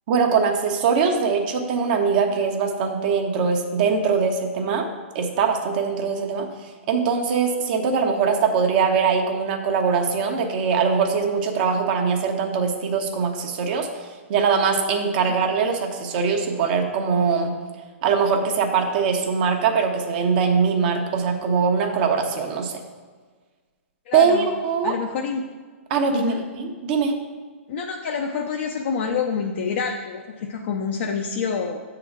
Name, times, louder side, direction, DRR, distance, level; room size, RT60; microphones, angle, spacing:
voice 1, 0.1-4.9 5.1-6.5 6.9-13.9 14.3-17.5 18.0-22.7 24.1-24.9 25.9-27.1, right 5 dB, 45° right, 3 dB, 0.9 m, -22 dB
voice 2, 24.1-24.5 24.8-25.4 26.1-26.4 27.7-31.8, left 6 dB, 55° left, 1 dB, 0.6 m, -27 dB
7.0 x 3.9 x 6.0 m, 1.5 s
hypercardioid pair, 145°, 7 cm